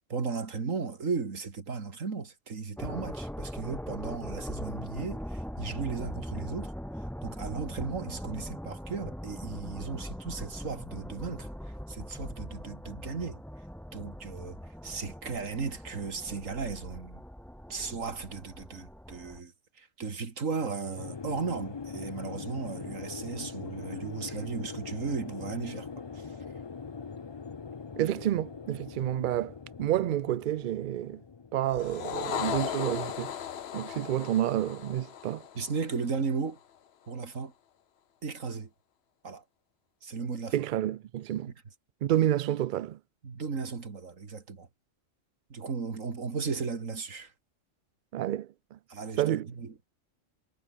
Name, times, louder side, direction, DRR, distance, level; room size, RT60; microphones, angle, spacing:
voice 1, 0.1-6.7 7.2-13.4 13.9-17.2 17.7-25.9 26.1-26.4 35.5-36.6 37.1-37.5 38.2-38.7 39.2-39.4 40.0-40.6 43.2-44.7 45.5-47.3 48.9-49.9, right 5 dB, 85° right, 2.6 m, -36 dB
sound 1, 2.8-19.4, equal, ahead, 1.2 m, -41 dB
sound 2, 20.9-33.2, left 5 dB, 35° left, 0.4 m, -42 dB
voice 2, 28.0-31.2 31.5-33.3 33.7-35.4 40.5-41.5 42.0-43.0 48.1-48.8 49.2-49.5, right 12 dB, 65° right, 0.5 m, -29 dB
sound 3, 31.7-36.3, left 9 dB, 55° left, 1.0 m, -36 dB
omnidirectional pair, 1.3 m